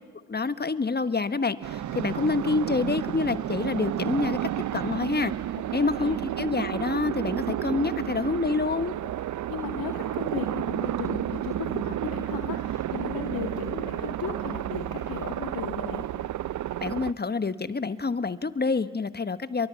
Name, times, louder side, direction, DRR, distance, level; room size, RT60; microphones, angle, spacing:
voice 1, 0.3-5.3 5.7-8.9 16.8-19.7, left 4 dB, 25° left, 13 dB, 1.3 m, -27 dB
sound 1, 1.6-17.1, right 12 dB, 50° right, 0.7 m, -31 dB
voice 2, 5.7-6.2 9.5-16.0, left 7 dB, 65° left, 4 dB, 2.1 m, -36 dB
29.0 x 23.5 x 7.0 m, 1.4 s
hypercardioid pair, 45°, 38 cm